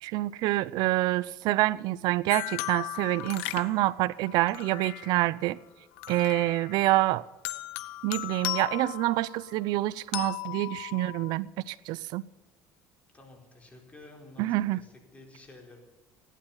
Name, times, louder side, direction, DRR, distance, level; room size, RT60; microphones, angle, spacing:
voice 1, 0.0-5.6 6.1-7.2 8.0-12.2 14.4-14.8, right 17 dB, 70° right, 0.5 m, -27 dB
sound 1, 2.3-5.4 6.0-7.0 7.4-9.6 10.1-11.4, left 18 dB, 90° left, 0.7 m, -37 dB
voice 2, 13.1-15.8, left 2 dB, 20° left, 4.4 m, -51 dB
16.0 x 12.0 x 5.6 m
supercardioid pair, 105°, 7 cm